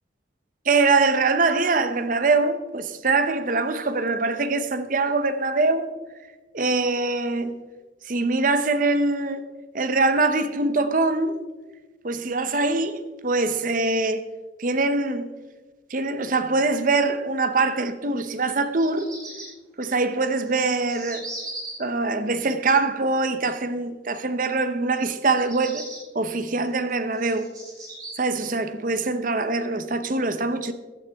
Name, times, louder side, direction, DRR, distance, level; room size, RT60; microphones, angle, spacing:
voice 1, 0.7-5.9 6.5-7.6 8.1-9.4 9.7-11.4 12.0-14.2 14.6-15.3 15.9-19.1 19.8-21.2 21.8-25.8 26.1-27.5 28.2-30.7, right 3 dB, 45° right, 0.8 m, -23 dB
Bird vocalization bird call bird song, 18.6-19.5 20.2-21.7 25.2-26.0 26.7-28.1, right 2 dB, 20° right, 4.9 m, -38 dB
15.5 x 12.0 x 3.5 m
head